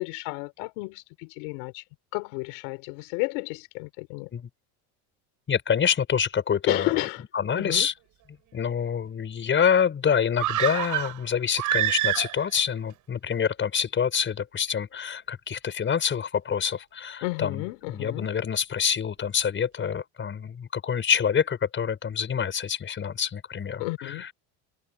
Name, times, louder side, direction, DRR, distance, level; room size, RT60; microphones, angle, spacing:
voice 1, 0.0-1.8 2.1-4.3 6.7-7.2 7.5-7.9 17.2-18.3 23.8-24.2, left 29 dB, 80° left, 4.8 m, -32 dB
voice 2, 5.5-7.1 7.3-7.9 8.5-17.6 17.9-24.3, left 7 dB, 30° left, 6.0 m, -26 dB
sound 1, 10.4-12.6 12.9-13.0, right 15 dB, 55° right, 5.5 m, -27 dB
supercardioid pair, 110°, 36 cm